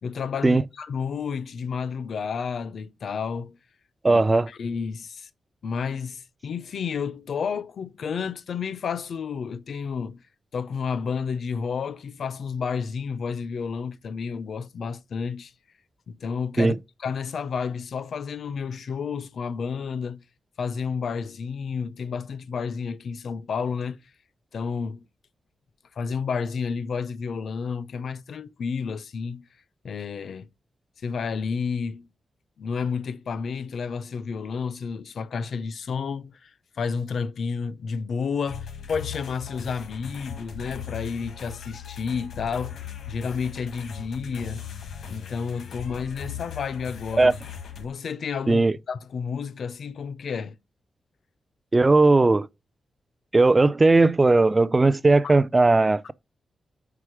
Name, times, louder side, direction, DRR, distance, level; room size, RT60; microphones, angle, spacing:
voice 1, 0.0-3.6 4.1-5.3 5.6-10.2 10.5-15.5 16.1-16.7 17.0-20.2 20.6-24.0 24.5-25.1 26.0-29.5 29.8-30.5 31.0-32.1 32.6-36.5 36.8-44.6 45.1-47.4 47.8-50.6, left 5 dB, 65° left, 0.6 m, -31 dB
voice 2, 4.0-4.5 16.6-16.8 47.2-47.3 48.5-48.8 51.7-52.5 53.3-56.1, right 3 dB, 20° right, 0.4 m, -18 dB
sound 1, 38.5-47.9, left 8 dB, 85° left, 1.2 m, -39 dB
5.6 x 4.8 x 6.1 m
wide cardioid pair, 130°, 0 cm